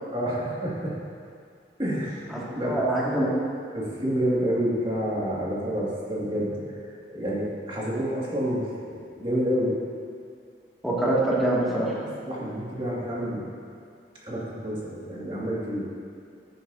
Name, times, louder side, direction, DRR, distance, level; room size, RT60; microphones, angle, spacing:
voice 1, 0.1-1.0 1.8-2.3 2.5-2.8 3.1-3.3 3.7-6.5 7.1-9.7 12.2-13.5 14.2-15.8, equal, 30° right, -6 dB, 2.2 m, -28 dB
voice 2, 2.3-3.3 10.8-11.9, right 1 dB, ahead, -8 dB, 2.2 m, -25 dB
13.5 x 10.5 x 2.8 m, 2.3 s
head